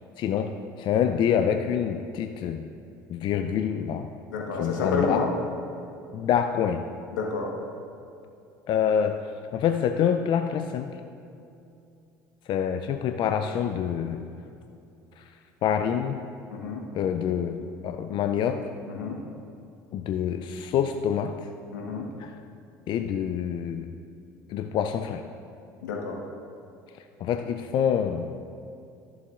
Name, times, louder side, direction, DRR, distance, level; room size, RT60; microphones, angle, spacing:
voice 1, 0.2-2.6 3.1-4.1 4.6-5.2 6.1-6.8 8.7-9.2 9.5-10.9 12.5-14.3 15.2-15.3 15.6-16.2 16.9-18.6 19.9-21.4 22.2-22.3 22.9-23.9 24.5-25.2 27.2-28.3, left 8 dB, 55° left, 6 dB, 0.4 m, -26 dB
voice 2, 4.3-5.3 7.1-7.5 16.5-16.8 18.9-19.2 21.7-22.1 25.8-26.2, left 4 dB, 85° left, -1 dB, 1.3 m, -29 dB
13.5 x 7.2 x 2.5 m, 2.6 s
hypercardioid pair, 70°, 10 cm